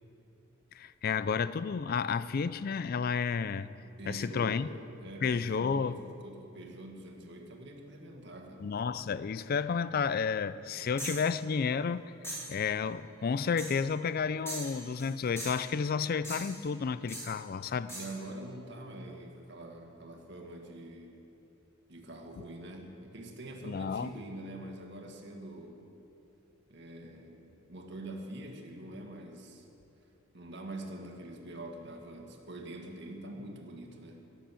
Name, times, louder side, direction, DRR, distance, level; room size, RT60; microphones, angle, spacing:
voice 1, 0.7-3.7 4.1-4.7 5.2-6.0 8.6-12.1 12.5-17.9 23.6-24.1, left 6 dB, 45° left, 16 dB, 0.4 m, -31 dB
voice 2, 4.0-4.7 5.0-8.6 17.9-21.2 21.9-25.8 26.7-29.7 30.3-34.2, right 1 dB, 55° right, 2 dB, 1.7 m, -45 dB
sound 1, 11.0-11.3 12.2-12.6 13.6-13.8 14.5-15.1 15.4-15.7 16.2-16.7 17.1-17.3 17.9-18.2, right 1 dB, 15° left, 3.1 m, -41 dB
13.5 x 10.0 x 6.9 m, 2.7 s
head